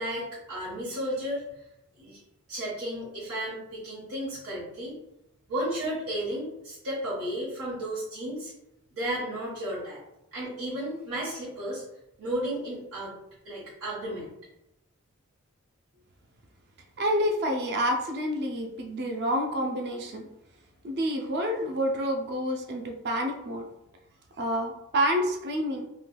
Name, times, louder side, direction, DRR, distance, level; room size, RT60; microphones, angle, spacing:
voice 1, 0.0-1.4 2.0-2.2 2.5-5.0 5.5-8.5 8.9-10.0 10.3-11.8 12.2-13.1 13.4-14.3, right 1 dB, 85° right, -9 dB, 1.2 m, -33 dB
voice 2, 17.0-20.3 20.8-23.7 24.4-25.8, equal, 45° right, 3 dB, 0.4 m, -28 dB
3.1 x 2.9 x 2.2 m, 0.85 s
head